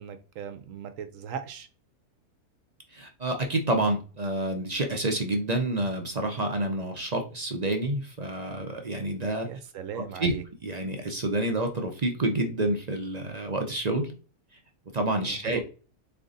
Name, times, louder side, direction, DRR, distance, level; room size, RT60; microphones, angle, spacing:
voice 1, 0.0-1.7 9.5-10.4 15.2-15.6, right 7 dB, 65° right, 1.0 m, -38 dB
voice 2, 2.9-9.5 10.0-10.3 10.6-14.1 14.9-15.6, right 1 dB, 45° right, 0.5 m, -28 dB
3.9 x 3.3 x 3.9 m
omnidirectional pair, 1.6 m